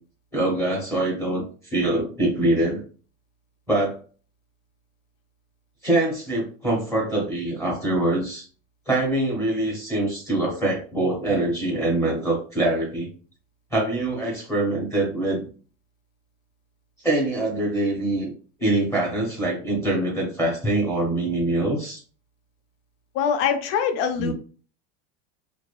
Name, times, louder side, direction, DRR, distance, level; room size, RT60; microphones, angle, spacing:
voice 1, 0.3-2.8 3.7-4.0 5.8-8.5 8.9-13.1 13.7-15.5 17.0-18.3 18.6-22.0 24.2-24.3, right 1 dB, 10° left, -4 dB, 0.8 m, -24 dB
voice 2, 23.1-24.3, left 7 dB, 60° left, 7 dB, 0.6 m, -23 dB
2.6 x 2.4 x 2.3 m, 0.39 s
cardioid pair, 170°, 33 cm